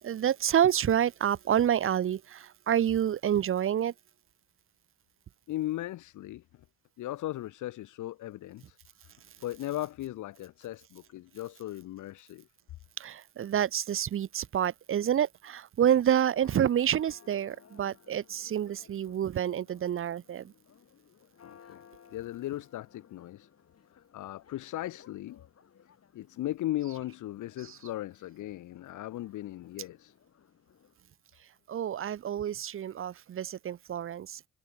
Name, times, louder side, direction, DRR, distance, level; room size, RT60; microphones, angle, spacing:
voice 1, 0.0-3.9 13.0-20.5 27.6-27.8 31.7-34.4, right 10 dB, 45° right, 0.7 m, -28 dB
voice 2, 5.5-6.4 7.0-8.8 9.4-12.4 21.4-21.8 22.1-23.5 24.1-25.4 26.1-30.1, left 15 dB, 80° left, 1.3 m, -37 dB
Church bell, 16.0-31.0, left 8 dB, 55° left, 7.9 m, -59 dB
cardioid pair, 90°, 30 cm